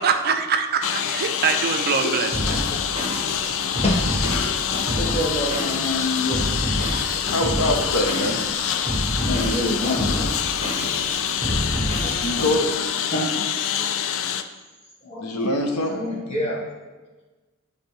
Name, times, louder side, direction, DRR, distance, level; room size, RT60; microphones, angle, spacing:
voice 1, 0.0-2.7, right 6 dB, 45° right, 6 dB, 0.5 m, -24 dB
Engine, 0.8-14.4, left 9 dB, 60° left, 0.3 m, -26 dB
Drum kit, 2.3-12.5, equal, 30° right, 1.6 m, -28 dB
voice 2, 3.8-4.5 4.9-6.4 7.9-8.0 8.5-10.4 11.1-12.5 13.1-13.5 15.0-15.5 15.9-16.6, left 1 dB, 30° left, -6 dB, 1.5 m, -28 dB
voice 3, 7.3-8.4 12.2-12.7 15.2-16.0, left 1 dB, 85° left, 3 dB, 0.8 m, -24 dB
8.7 x 3.2 x 3.3 m, 1.2 s
head